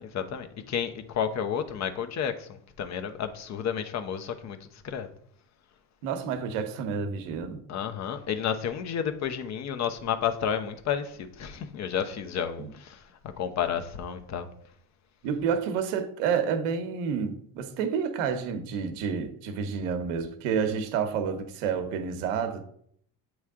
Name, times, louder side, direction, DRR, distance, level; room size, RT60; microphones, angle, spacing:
voice 1, 0.0-5.1 7.7-13.0 13.4-14.5, left 8 dB, 45° left, 0.9 m, -31 dB
voice 2, 6.0-7.6 12.6-12.7 15.2-22.6, right 6 dB, 85° right, 1.0 m, -29 dB
8.2 x 3.2 x 3.6 m
supercardioid pair, 90°, 36 cm